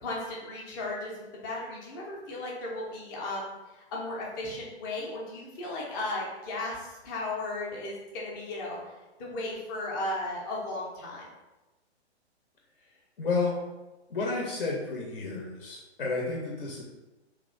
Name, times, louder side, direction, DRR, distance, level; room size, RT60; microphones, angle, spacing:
voice 1, 0.0-3.5 3.9-8.8 9.2-11.3, left 2 dB, 20° left, -4 dB, 0.6 m, -35 dB
voice 2, 13.2-13.6 14.1-16.8, left 3 dB, 50° left, -1 dB, 0.7 m, -31 dB
3.0 x 2.4 x 3.7 m, 1.1 s
figure-of-eight pair, 125°, 34 cm